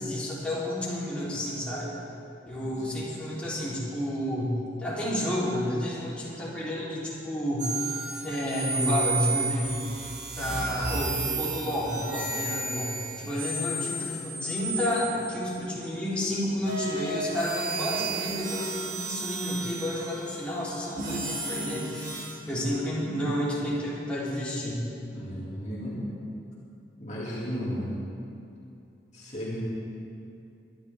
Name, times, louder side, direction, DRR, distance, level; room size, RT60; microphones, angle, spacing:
voice 1, 0.0-1.9 2.5-7.7 8.2-9.9 10.4-24.8 29.5-29.6, left 1 dB, 5° left, -9 dB, 3.4 m, -30 dB
sound 1, 7.6-15.9 16.6-22.3, right 3 dB, 50° right, 2.6 m, -33 dB
voice 2, 25.1-26.1 27.0-27.9 29.1-29.6, equal, 40° left, -7 dB, 2.5 m, -35 dB
23.0 x 11.5 x 3.6 m, 2.6 s
head